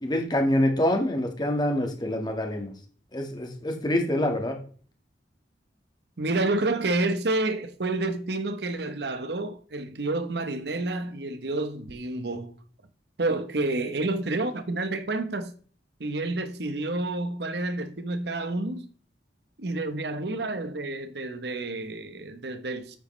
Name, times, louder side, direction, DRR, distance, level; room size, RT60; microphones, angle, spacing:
voice 1, 0.0-2.7 3.1-4.6, left 1 dB, 25° left, 1.7 m, -26 dB
voice 2, 6.2-12.5 13.2-15.5 16.0-18.9 19.6-23.0, right 2 dB, 70° right, 1.0 m, -29 dB
9.0 x 8.5 x 3.2 m
head